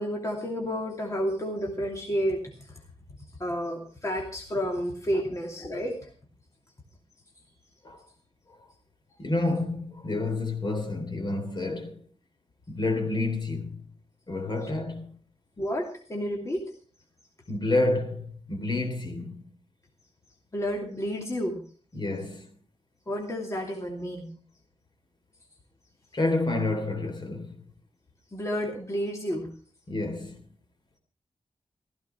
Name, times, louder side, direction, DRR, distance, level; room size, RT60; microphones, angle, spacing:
voice 1, 0.0-2.8 3.2-6.1 14.6-14.7 15.6-16.8 20.5-21.6 23.1-24.4 28.3-29.5, equal, 25° left, 2.6 m, -31 dB
voice 2, 9.2-12.0 12.7-13.8 14.3-15.1 17.5-19.4 21.9-22.5 26.1-27.6 29.9-30.4, left 2 dB, 40° left, 3.3 m, -29 dB
15.5 x 14.5 x 4.4 m
wide cardioid pair, 125°, 11 cm